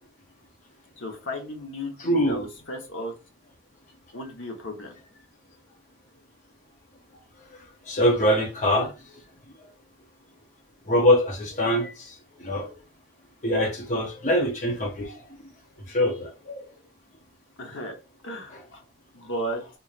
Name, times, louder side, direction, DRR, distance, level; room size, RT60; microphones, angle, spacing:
voice 1, 1.0-3.1 4.1-5.0 17.6-18.0 18.2-18.8 19.1-19.7, equal, 70° left, 1.1 m, -34 dB
voice 2, 2.0-2.5 7.5-8.9 10.9-12.7 13.4-15.2 15.9-16.7 18.5-18.6, left 1 dB, 35° left, 0.8 m, -24 dB
3.9 x 3.1 x 2.4 m
head